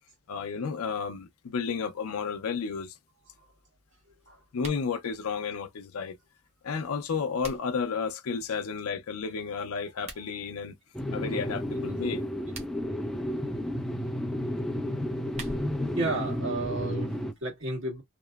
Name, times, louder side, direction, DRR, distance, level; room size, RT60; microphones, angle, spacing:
voice 1, 0.3-2.9 4.5-6.2 6.6-10.7 11.1-12.2, left 5 dB, 80° left, 0.5 m, -32 dB
sound 1, 4.5-4.9 6.9-7.9 9.9-10.3 12.3-12.9 14.9-15.9, right 2 dB, 30° right, 0.7 m, -44 dB
sound 2, 10.9-17.3, left 1 dB, ahead, 0.3 m, -32 dB
voice 2, 15.9-18.0, right 2 dB, 60° right, 1.5 m, -33 dB
2.9 x 2.0 x 2.2 m
head